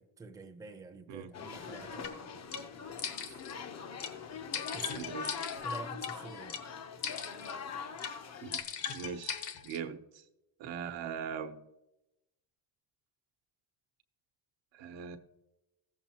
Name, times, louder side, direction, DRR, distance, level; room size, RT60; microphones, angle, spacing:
voice 1, 0.0-3.4 4.7-5.3 5.6-6.6, right 4 dB, 10° right, 0.6 m, -49 dB
sound 1, 1.3-8.6, left 6 dB, 35° left, 0.6 m, -42 dB
sound 2, 2.0-2.1 2.5-2.6 3.0-3.5 4.0-4.1 4.5-6.1 6.5-6.6 7.0-7.6 8.0-8.1 8.5-9.8, left 8 dB, 60° left, 1.1 m, -39 dB
voice 2, 4.9-5.3 8.4-8.6 8.9-10.2 10.6-11.6 14.7-15.2, right 7 dB, 80° right, 1.0 m, -41 dB
15.5 x 7.2 x 2.8 m
cardioid pair, 135°, 45 cm